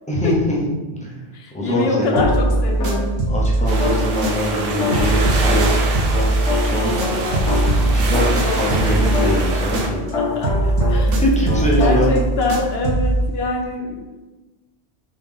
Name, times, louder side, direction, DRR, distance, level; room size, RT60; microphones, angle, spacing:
voice 1, 0.1-0.6 0.9-1.2 1.5-2.2 3.3-5.8 6.6-7.3 7.9-10.0 11.1-12.2, equal, 10° left, -5 dB, 0.6 m, -23 dB
voice 2, 1.3-3.1 6.9-7.9 10.1-11.2 11.5-14.0, left 3 dB, 65° left, 1 dB, 0.8 m, -25 dB
sound 1, 2.1-3.3 3.8-5.9 6.1-11.2 11.5-12.1, left 4 dB, 85° left, 1.1 m, -26 dB
sound 2, 2.2-4.6 4.9-10.1 10.4-13.2, right 2 dB, 80° right, 1.0 m, -20 dB
sound 3, 3.7-9.9, right 2 dB, 55° right, 0.8 m, -26 dB
3.7 x 3.1 x 3.4 m, 1.2 s
omnidirectional pair, 1.2 m